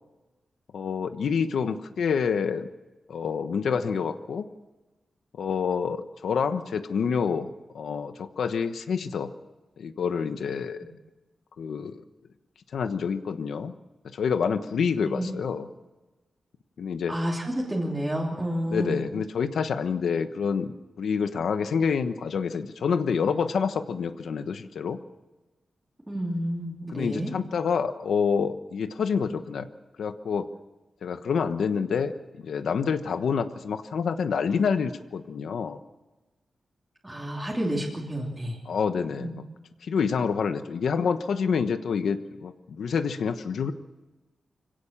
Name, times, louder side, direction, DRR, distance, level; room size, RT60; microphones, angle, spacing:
voice 1, 0.7-2.7 3.1-4.5 5.4-7.5 7.7-9.3 9.8-10.9 11.6-12.0 12.7-13.7 14.0-15.7 16.8-17.1 18.7-20.7 21.0-25.0 26.9-29.7 30.0-30.5 31.0-35.8 38.7-39.3 39.8-43.7, left 6 dB, 90° left, 9 dB, 1.2 m, -27 dB
voice 2, 17.1-19.0 26.1-27.3 37.0-38.6 39.2-39.3, equal, 10° right, -4 dB, 2.9 m, -30 dB
25.0 x 17.0 x 7.4 m, 1.1 s
wide cardioid pair, 180°, 0 cm